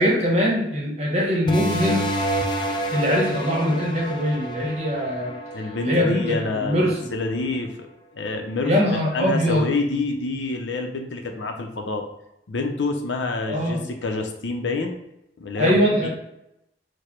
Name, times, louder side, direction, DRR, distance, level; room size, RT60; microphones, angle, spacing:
voice 1, 0.0-2.1 2.9-5.3 5.8-7.0 8.6-9.6 13.5-13.9 15.6-16.1, equal, 40° right, -2 dB, 1.3 m, -22 dB
sound 1, 1.5-6.7, right 1 dB, 25° left, 0.5 m, -29 dB
voice 2, 5.5-7.9 8.1-12.1 12.5-15.0 15.4-16.1, left 3 dB, 90° left, 4 dB, 0.6 m, -27 dB
4.9 x 2.2 x 4.4 m, 0.84 s
head